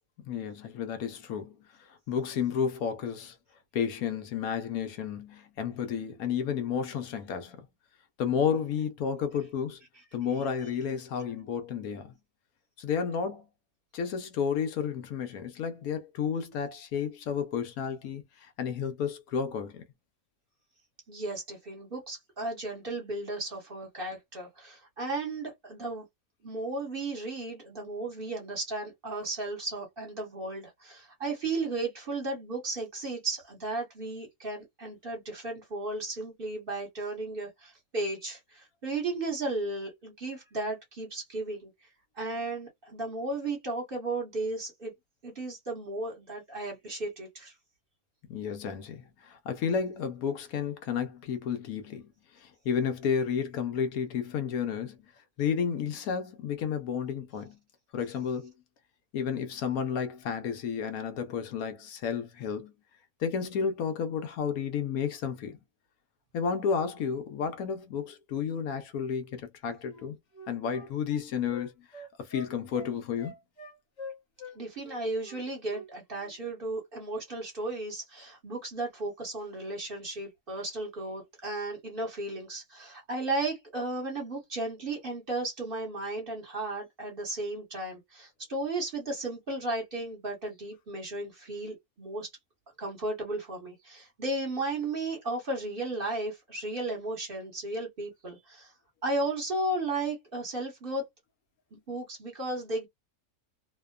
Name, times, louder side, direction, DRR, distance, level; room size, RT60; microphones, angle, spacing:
voice 1, 0.2-3.4 3.7-7.7 8.2-9.8 10.1-12.1 12.8-13.5 13.9-19.8 48.3-55.0 55.4-57.6 57.9-58.5 59.1-62.7 63.2-65.6 66.3-70.2 70.5-73.3, left 7 dB, 75° left, 1.1 m, -32 dB
voice 2, 21.1-26.0 26.4-41.7 42.2-44.9 45.2-47.5 74.5-92.3 92.8-98.7 99.0-101.1 101.7-102.9, right 2 dB, 40° right, 1.2 m, -34 dB
Wind instrument woodwind instrument, 69.9-74.6 74.8-75.9 76.1-76.3, left 2 dB, 45° left, 0.6 m, -45 dB
2.8 x 2.1 x 2.2 m
omnidirectional pair, 1.6 m